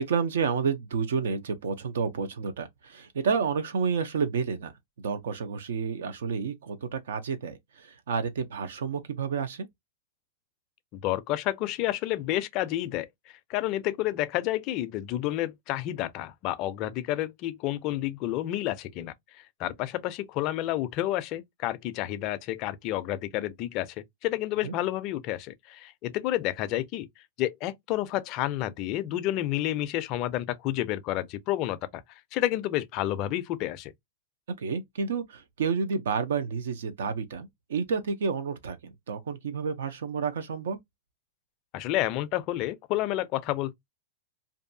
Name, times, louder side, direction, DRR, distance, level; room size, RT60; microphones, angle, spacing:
voice 1, 0.0-4.7 5.0-9.7 24.6-24.7 34.6-40.8, right 5 dB, 80° right, 0.6 m, -30 dB
voice 2, 10.9-13.1 13.5-19.1 19.6-24.0 24.2-27.1 27.4-32.0 32.3-33.9 41.7-43.7, left 14 dB, 35° left, 0.3 m, -30 dB
2.6 x 2.3 x 2.6 m
supercardioid pair, 150°, 0 cm